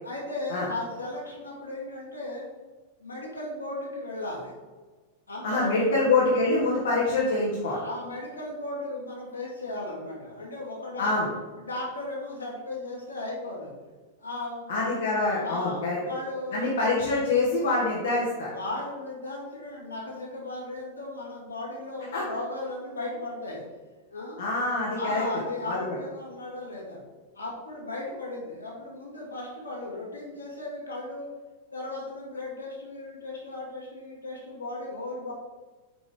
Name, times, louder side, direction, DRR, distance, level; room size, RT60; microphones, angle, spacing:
voice 1, 0.0-2.5 3.0-4.5 5.3-5.7 7.6-11.1 11.6-13.7 14.2-16.7 18.5-23.6 24.1-24.4 24.9-27.0 27.3-31.3 31.7-35.3, left 2 dB, 80° left, -4 dB, 2.5 m, -36 dB
voice 2, 5.4-7.8 11.0-11.3 14.7-16.0 16.5-18.5 22.1-22.2 24.4-25.2 25.7-25.8, left 3 dB, 60° left, -5 dB, 1.5 m, -25 dB
8.5 x 5.3 x 3.8 m, 1.3 s
figure-of-eight pair, 90°, 0 cm